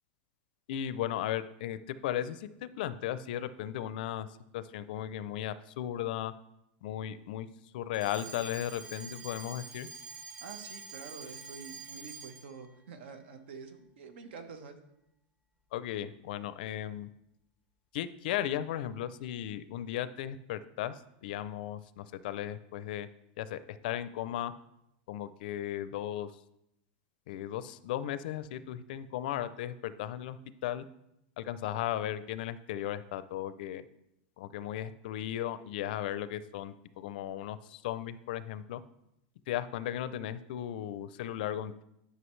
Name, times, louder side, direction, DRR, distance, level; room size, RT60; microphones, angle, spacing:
voice 1, 0.7-4.3 4.5-6.3 6.8-7.5 7.7-9.9 15.7-17.1 17.9-23.1 23.4-24.5 25.1-26.3 27.3-30.4 30.6-30.8 31.4-33.8 34.4-38.8 39.5-41.8, left 11 dB, 55° left, 14 dB, 0.4 m, -36 dB
Alarm, 7.9-12.6, right 4 dB, 15° right, 0.7 m, -46 dB
voice 2, 10.4-14.8, right 5 dB, 80° right, 8 dB, 1.2 m, -47 dB
11.0 x 5.7 x 3.2 m, 0.83 s
supercardioid pair, 170°, 6 cm